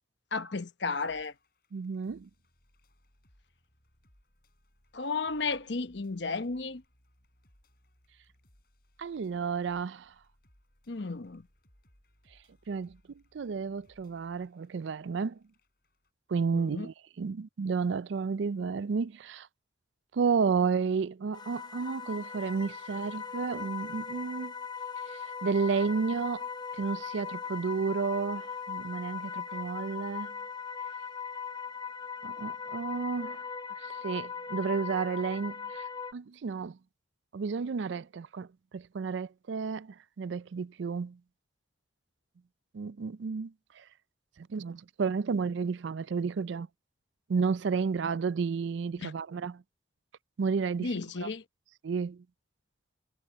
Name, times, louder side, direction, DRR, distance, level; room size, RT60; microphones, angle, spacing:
voice 1, 0.3-1.3 4.9-6.8 10.9-11.4 16.5-16.9 49.0-49.1 50.8-51.4, left 4 dB, 70° left, 0.9 m, -33 dB
sound 1, 1.0-16.1, equal, 50° left, 7.9 m, -67 dB
voice 2, 1.7-2.3 9.0-10.1 12.7-13.0 13.3-15.4 16.3-19.5 20.1-24.5 25.4-26.4 26.8-30.3 32.2-33.4 34.0-35.8 36.1-36.8 37.3-38.5 38.7-41.2 42.7-43.5 44.4-46.7 47.3-49.6 50.4-50.9 51.2-51.3 51.8-52.2, right 5 dB, 75° right, 0.4 m, -31 dB
sound 2, 21.3-36.1, left 6 dB, 20° left, 0.6 m, -39 dB
head